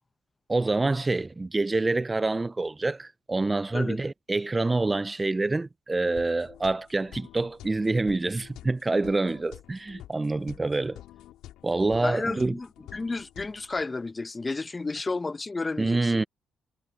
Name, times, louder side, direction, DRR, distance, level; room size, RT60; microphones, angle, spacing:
voice 1, 0.5-11.0 11.6-12.6 15.8-16.2, right 2 dB, 25° right, 0.8 m, -26 dB
sound 1, 6.2-13.8, left 13 dB, 75° left, 2.5 m, -48 dB
voice 2, 12.0-12.7 12.9-16.2, left 3 dB, 30° left, 1.3 m, -32 dB
hypercardioid pair, 50°, 0 cm